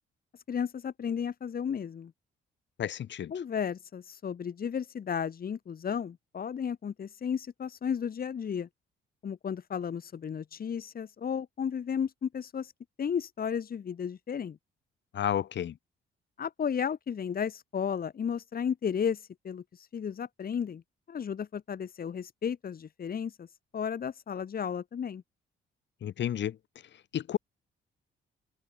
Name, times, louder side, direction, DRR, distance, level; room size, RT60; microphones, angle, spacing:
voice 1, 0.5-2.1 3.3-8.7 9.2-12.7 13.0-14.6 16.4-20.8 21.1-23.5 23.7-25.2, left 7 dB, 50° left, 2.7 m, -33 dB
voice 2, 2.8-3.3 15.1-15.7 26.0-26.6 27.1-27.4, left 10 dB, 65° left, 3.1 m, -31 dB
cardioid pair, 90°, 20 cm